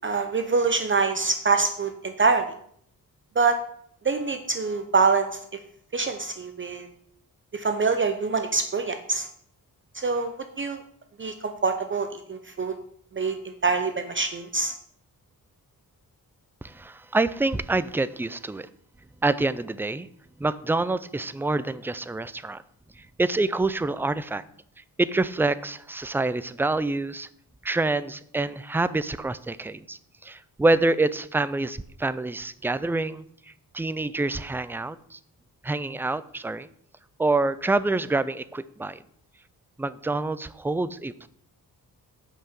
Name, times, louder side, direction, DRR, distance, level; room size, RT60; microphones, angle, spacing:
voice 1, 0.0-2.5 3.4-3.6 4.0-5.4 5.9-6.9 7.5-9.3 9.9-10.8 11.2-12.8 13.1-14.7, right 4 dB, 35° right, 7 dB, 0.7 m, -25 dB
voice 2, 16.6-18.7 19.2-20.1 20.4-22.6 23.2-24.4 25.0-27.3 27.6-33.2 33.7-35.2 35.6-36.7 37.2-39.0 39.8-41.3, right 2 dB, 5° right, 15 dB, 0.3 m, -26 dB
8.2 x 5.8 x 6.7 m, 0.67 s
wide cardioid pair, 130°, 36 cm